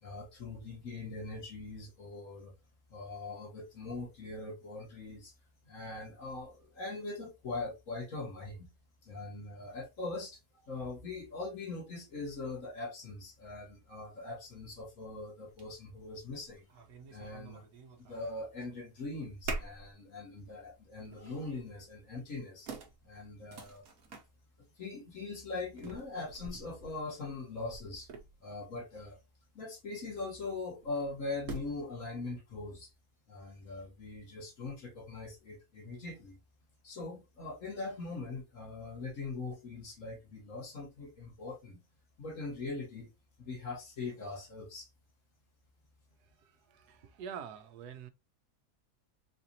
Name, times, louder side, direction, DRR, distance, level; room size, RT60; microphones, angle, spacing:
voice 1, 0.0-2.5 2.9-5.3 5.6-8.7 9.0-16.7 17.1-17.6 18.0-22.7 23.0-23.8 24.8-28.1 28.4-29.2 29.5-32.9 33.3-36.4 36.8-41.8 42.2-43.1 43.4-44.9, left 3 dB, 60° left, 1.7 m, -41 dB
sound 1, 14.7-14.8 15.5-15.7 16.1-18.3 18.6-19.0 19.4-19.9 20.4-20.5 21.0-21.4 22.2-22.3 22.7-24.3 25.7-28.6 30.8-31.9, right 3 dB, 70° right, 1.4 m, -45 dB
voice 2, 46.7-48.1, right 7 dB, 90° right, 1.2 m, -45 dB
4.0 x 2.6 x 2.8 m
omnidirectional pair, 1.6 m